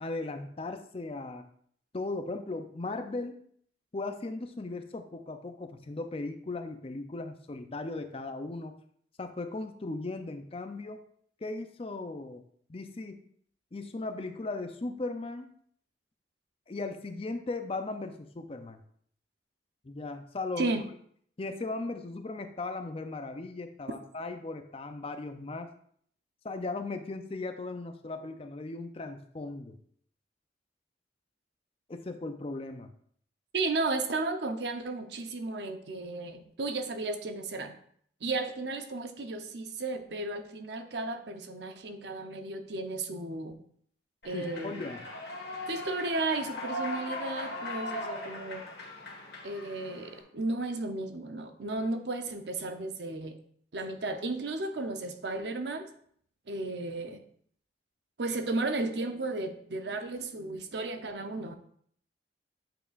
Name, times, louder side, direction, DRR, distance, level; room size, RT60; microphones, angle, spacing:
voice 1, 0.0-1.5 1.9-3.4 3.9-8.8 9.2-11.0 11.4-12.4 12.7-13.2 13.7-15.5 16.7-18.8 19.8-20.8 21.4-25.7 26.4-29.8 31.9-32.9 44.3-45.0, left 3 dB, 30° left, 8 dB, 0.5 m, -37 dB
voice 2, 33.5-37.7 38.2-43.6 44.2-44.9 45.7-48.6 49.4-53.4 53.7-55.9 56.5-57.2 58.2-61.6, right 2 dB, 65° right, 7 dB, 0.7 m, -34 dB
Human voice / Clapping / Cheering, 44.2-50.2, left 1 dB, 60° left, 1.5 m, -39 dB
8.7 x 5.5 x 2.5 m, 0.62 s
head